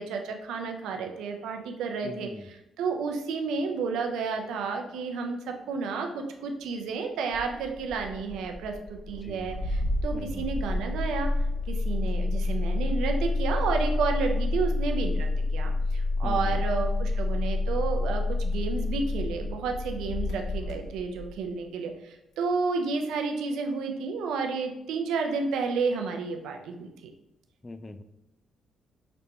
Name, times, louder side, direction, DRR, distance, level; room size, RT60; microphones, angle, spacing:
voice 1, 0.0-2.3 2.8-11.3 11.7-26.9, right 4 dB, 85° right, 4 dB, 0.4 m, -31 dB
voice 2, 2.0-2.5 9.2-9.5 10.1-10.5 16.2-16.7 27.6-28.0, left 2 dB, 25° left, 10 dB, 0.3 m, -41 dB
Engine starting, 7.3-21.4, left 2 dB, 75° left, 0.8 m, -29 dB
5.0 x 2.2 x 2.9 m, 0.87 s
supercardioid pair, 60°, 0 cm